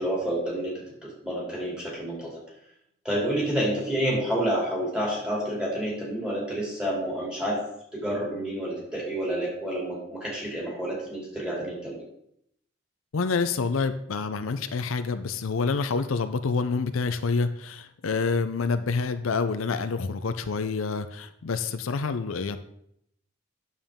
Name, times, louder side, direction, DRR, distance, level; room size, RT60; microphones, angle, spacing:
voice 1, 0.0-2.4 3.0-7.6 7.9-12.0, right 1 dB, 5° right, -5 dB, 2.8 m, -29 dB
voice 2, 13.1-22.6, left 4 dB, 80° left, 10 dB, 0.5 m, -27 dB
9.2 x 7.1 x 3.6 m, 0.74 s
head